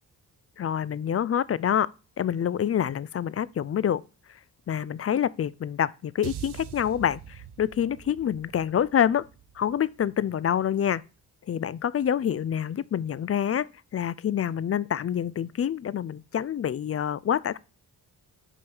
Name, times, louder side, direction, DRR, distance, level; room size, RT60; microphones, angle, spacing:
voice 1, 0.6-1.9 2.2-4.0 4.7-9.3 9.6-11.0 11.5-13.7 13.9-17.6, left 9 dB, 35° left, 0.4 m, -27 dB
sound 1, 6.2-10.6, right 10 dB, 65° right, 0.8 m, -44 dB
5.4 x 5.1 x 6.1 m
supercardioid pair, 45°, 44 cm